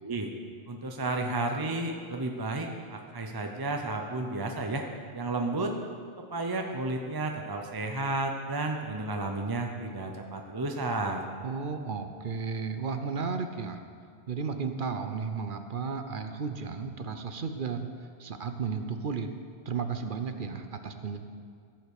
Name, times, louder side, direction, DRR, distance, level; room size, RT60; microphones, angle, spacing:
voice 1, 0.7-4.8 5.1-5.7 6.2-11.2, right 2 dB, 25° right, 3 dB, 0.6 m, -32 dB
voice 2, 11.4-13.8 14.3-17.9 18.2-19.3 19.7-21.2, right 5 dB, 55° right, 7 dB, 0.8 m, -33 dB
15.0 x 5.6 x 6.6 m, 2.2 s
omnidirectional pair, 1.1 m